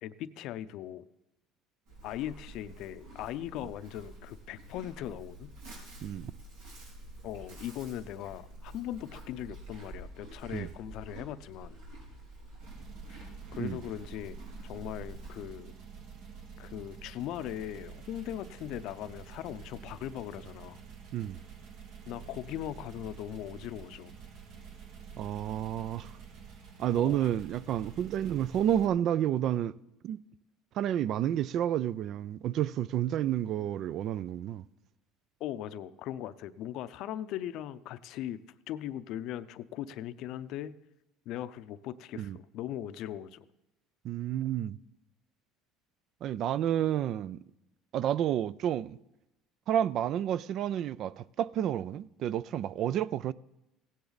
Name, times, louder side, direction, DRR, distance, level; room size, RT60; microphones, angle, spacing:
voice 1, 0.0-1.1 2.0-5.5 7.2-11.8 13.1-15.7 16.6-20.8 22.1-24.2 27.0-27.3 35.4-38.4 38.7-40.8 41.3-43.5, left 12 dB, 65° left, 0.5 m, -39 dB
Livestock farm animals working animals, 1.9-15.5, right 1 dB, 90° right, 4.9 m, -48 dB
voice 2, 6.0-6.3 10.5-10.7 13.6-13.8 21.1-21.4 25.2-26.1 26.8-29.7 30.0-30.2 30.8-34.6 42.1-42.4 44.0-44.8 46.2-47.4 47.9-49.0 49.7-53.3, right 11 dB, 55° right, 0.3 m, -30 dB
sound 1, 12.6-28.9, right 6 dB, 70° right, 1.8 m, -48 dB
16.5 x 10.0 x 4.0 m
supercardioid pair, 110°, 0 cm